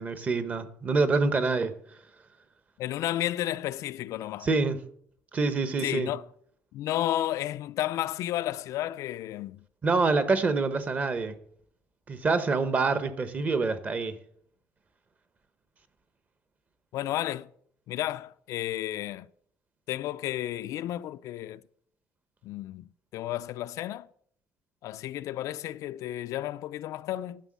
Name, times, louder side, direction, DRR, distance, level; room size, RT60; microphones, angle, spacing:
voice 1, 0.0-1.7 4.4-4.8 5.3-6.1 9.8-11.3 12.1-14.2, right 3 dB, 25° right, 0.8 m, -26 dB
voice 2, 2.8-4.5 5.8-6.2 6.7-9.6 16.9-17.5 17.9-19.3 19.9-21.6 22.4-22.8 23.1-24.1 24.8-27.4, left 13 dB, 60° left, 0.4 m, -32 dB
11.5 x 6.0 x 7.3 m
cardioid pair, 165°, 6 cm